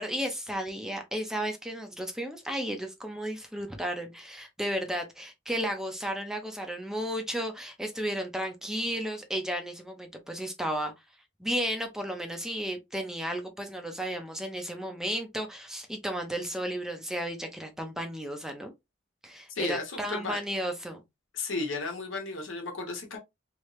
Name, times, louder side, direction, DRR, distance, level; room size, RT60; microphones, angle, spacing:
voice 1, 0.0-10.9 11.4-18.7 19.2-21.0, equal, 5° right, 0.6 m, -33 dB
voice 2, 19.5-20.4 21.3-23.2, left 3 dB, 75° left, 1.2 m, -34 dB
3.3 x 2.7 x 3.0 m
head